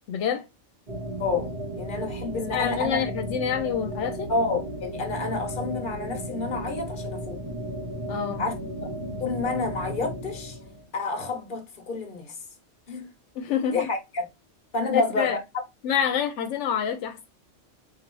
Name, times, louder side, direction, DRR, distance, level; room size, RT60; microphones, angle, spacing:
voice 1, 0.1-0.5 2.3-4.3 8.1-8.4 13.4-13.9 14.9-15.4 15.8-17.2, left 8 dB, 85° left, 0.9 m, -27 dB
sound 1, 0.9-10.8, right 1 dB, 50° right, 1.2 m, -34 dB
voice 2, 1.2-3.1 4.3-7.4 8.4-8.5 9.2-10.6 10.9-12.4 12.9-13.1 13.7-14.3 14.7-15.4, left 3 dB, 45° left, 1.1 m, -29 dB
3.9 x 2.7 x 3.0 m
omnidirectional pair, 1.2 m